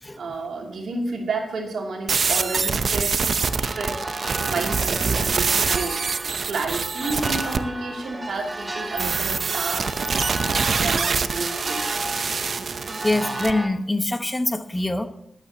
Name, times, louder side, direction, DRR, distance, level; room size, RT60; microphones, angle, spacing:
voice 1, 0.2-4.1 4.5-12.0, right 3 dB, 80° right, 2.7 m, -31 dB
sound 1, 2.1-7.6 9.0-13.5, right 5 dB, 60° right, 0.7 m, -25 dB
sound 2, 3.4-13.7, right 2 dB, 20° right, 1.7 m, -33 dB
voice 2, 13.0-15.1, left 2 dB, 15° left, 1.2 m, -24 dB
19.5 x 8.8 x 2.9 m
cardioid pair, 85°, 0 cm